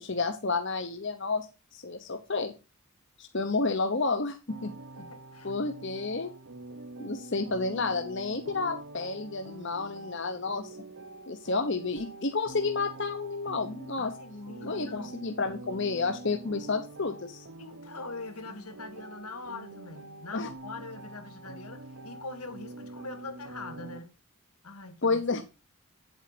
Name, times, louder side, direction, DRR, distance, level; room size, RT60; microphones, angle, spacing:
voice 1, 0.0-2.5 3.2-4.7 5.4-6.3 7.0-10.8 11.3-14.1 14.6-17.5 20.3-20.5 25.0-25.5, left 3 dB, 55° left, 1.0 m, -31 dB
sound 1, 4.5-24.0, right 2 dB, 65° right, 1.0 m, -45 dB
voice 2, 5.0-5.5 14.0-15.1 17.6-24.1 24.6-25.2, left 3 dB, 85° left, 2.0 m, -43 dB
8.9 x 8.0 x 4.1 m
head